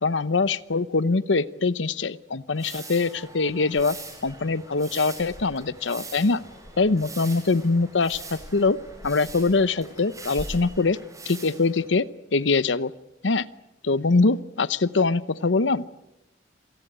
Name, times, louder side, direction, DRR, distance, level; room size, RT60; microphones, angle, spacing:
voice 1, 0.0-4.0 4.2-6.4 6.8-8.8 9.0-11.0 11.3-12.1 12.3-12.9 13.2-13.5 13.8-16.0, left 3 dB, 90° left, 17 dB, 0.9 m, -23 dB
sound 1, 2.5-11.9, right 3 dB, 20° right, 7.3 m, -43 dB
sound 2, 3.7-10.6, equal, 35° left, 4.1 m, -45 dB
27.0 x 19.0 x 9.3 m, 0.91 s
head